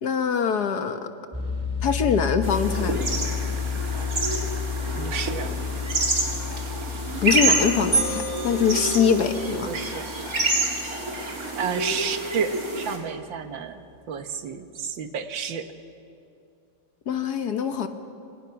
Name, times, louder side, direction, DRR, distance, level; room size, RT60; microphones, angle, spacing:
voice 1, 0.0-1.1 1.8-3.0 7.2-9.7 17.1-17.9, left 7 dB, 60° left, 8 dB, 1.6 m, -23 dB
sound 1, 1.3-12.2, left 6 dB, 5° right, 2.8 m, -32 dB
sound 2, 2.4-13.0, right 2 dB, 45° right, 3.4 m, -28 dB
voice 2, 5.0-5.5 9.7-10.1 11.6-15.6, right 7 dB, 75° right, 8 dB, 1.9 m, -31 dB
sound 3, 7.9-9.7, right 3 dB, 80° left, 5.1 m, -29 dB
28.0 x 25.5 x 5.9 m, 2.5 s
omnidirectional pair, 2.1 m